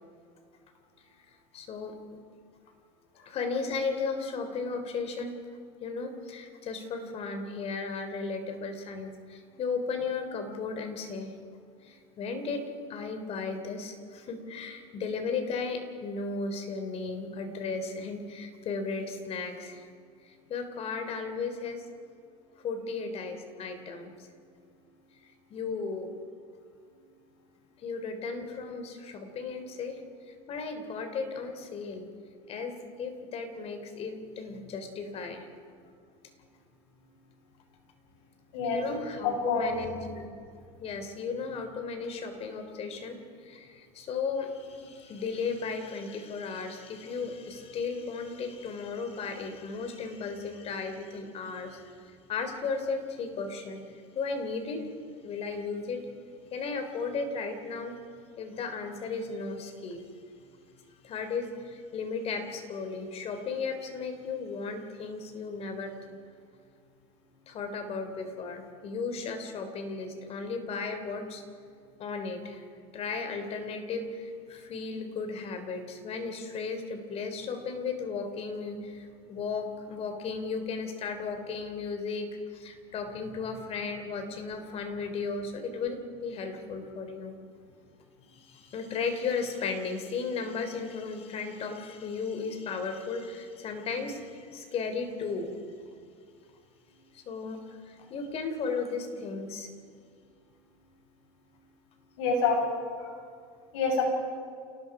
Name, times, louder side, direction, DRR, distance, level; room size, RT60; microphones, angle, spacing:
voice 1, 1.5-1.9 3.2-5.4 5.8-11.3 11.8-19.8 20.2-21.8 22.6-24.1 25.5-26.1 27.8-30.0 30.3-32.1 32.5-35.5 38.6-40.3 40.8-53.8 54.1-54.8 55.2-56.1 56.5-58.0 58.4-60.1 61.0-65.9 67.5-71.4 72.0-72.7 72.9-87.3 88.3-95.6 97.1-99.7, left 4 dB, 45° left, 7 dB, 3.4 m, -35 dB
voice 2, 39.2-39.7 102.2-102.6 103.0-103.1 103.7-104.0, left 5 dB, 80° left, 1 dB, 6.5 m, -26 dB
28.5 x 18.5 x 4.9 m, 2.2 s
supercardioid pair, 110°, 15 cm